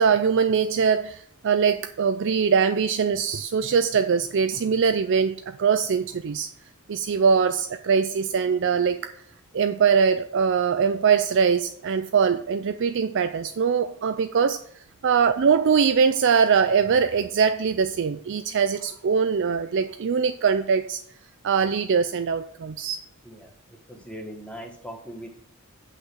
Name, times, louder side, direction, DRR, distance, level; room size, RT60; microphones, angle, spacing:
voice 1, 0.0-6.5 6.9-9.1 9.5-14.6 15.0-21.0 21.4-23.0, right 6 dB, 55° right, 9 dB, 0.4 m, -22 dB
voice 2, 23.2-25.3, equal, 5° left, 2 dB, 1.4 m, -40 dB
7.7 x 5.9 x 6.2 m, 0.62 s
head